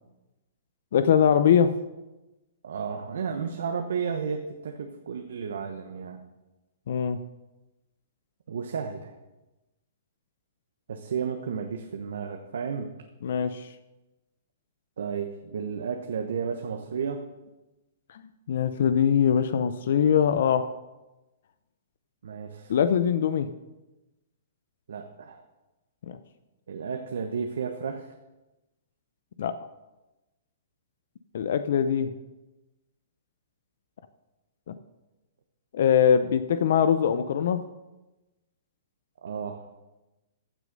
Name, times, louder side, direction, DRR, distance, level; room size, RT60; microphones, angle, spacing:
voice 1, 0.9-1.7 6.9-7.2 13.2-13.7 18.1-18.2 18.5-20.7 22.7-23.5 26.1-26.2 29.4-29.6 31.3-32.1 34.7-34.8 35.7-37.6, left 8 dB, 65° left, 12 dB, 0.6 m, -22 dB
voice 2, 2.6-6.2 8.5-9.2 10.9-12.9 15.0-17.2 22.2-22.7 24.9-25.4 26.7-28.1 39.2-39.7, right 6 dB, 80° right, 5 dB, 1.1 m, -32 dB
15.0 x 6.3 x 5.4 m, 1.0 s
hypercardioid pair, 150°, 0 cm